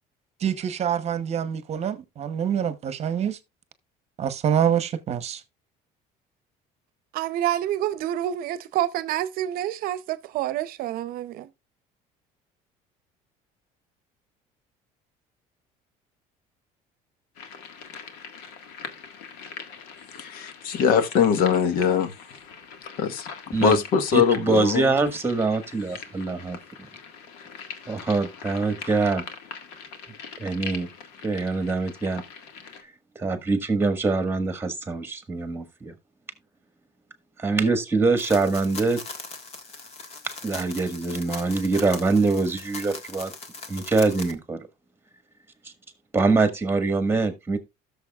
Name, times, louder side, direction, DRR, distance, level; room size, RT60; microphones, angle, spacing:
voice 1, 0.4-3.4 4.2-5.4, right 8 dB, 40° right, 1.0 m, -26 dB
voice 2, 7.1-11.5, right 12 dB, 65° right, 0.7 m, -28 dB
sound 1, 17.3-32.8, left 6 dB, 90° left, 1.8 m, -42 dB
voice 3, 20.2-22.1 23.0-23.3 23.6-24.9, left 7 dB, 65° left, 1.3 m, -22 dB
voice 4, 24.1-26.6 27.9-29.3 30.4-30.9 31.2-32.2 33.2-35.9 37.4-39.0 40.4-43.3 43.7-44.6 46.1-47.6, right 3 dB, 15° right, 1.6 m, -24 dB
sound 2, 38.2-44.3, left 4 dB, 40° left, 1.7 m, -40 dB
16.0 x 6.9 x 2.4 m
cardioid pair, 125°, 16 cm